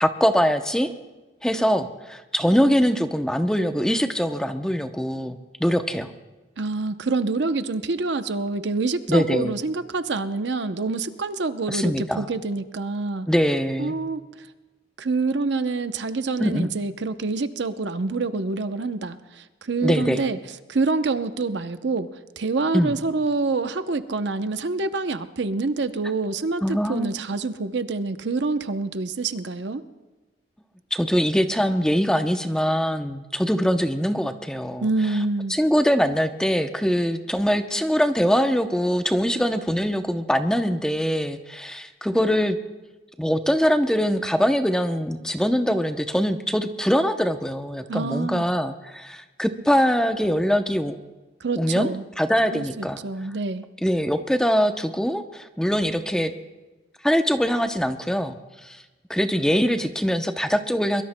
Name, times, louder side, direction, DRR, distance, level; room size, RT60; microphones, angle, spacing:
voice 1, 0.0-0.9 1.4-6.1 9.1-9.6 11.7-12.3 13.3-13.9 16.4-16.7 19.8-20.2 22.7-23.0 26.6-27.2 30.9-34.9 35.5-42.6 43.2-50.9 51.6-53.0 53.8-56.3 57.0-58.8 59.1-61.0, equal, 5° left, 6 dB, 0.6 m, -23 dB
voice 2, 6.6-13.3 13.8-14.2 15.0-20.4 20.7-22.1 22.4-29.8 34.8-35.5 47.9-48.5 51.4-52.0 52.5-53.6, right 3 dB, 70° right, 10 dB, 0.7 m, -26 dB
23.5 x 23.0 x 2.2 m, 1.2 s
head